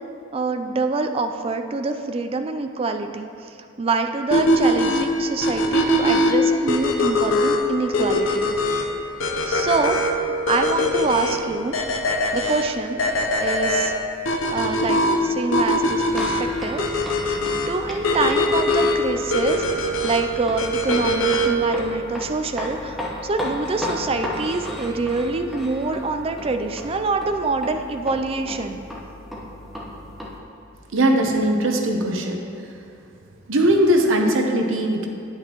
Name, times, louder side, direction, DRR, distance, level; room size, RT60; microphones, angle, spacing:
voice 1, 0.3-8.6 9.5-10.0 10.5-11.8 12.3-13.0 13.4-13.9 14.5-23.0 23.2-28.8, right 3 dB, 30° right, 7 dB, 0.4 m, -26 dB
sound 1, 4.3-21.7, left 1 dB, 75° left, 0.7 m, -22 dB
sound 2, 16.1-30.4, left 1 dB, ahead, 1.0 m, -34 dB
voice 2, 30.9-32.4 33.5-35.1, right 1 dB, 75° right, 3 dB, 0.8 m, -19 dB
9.2 x 8.7 x 3.0 m, 2.5 s
head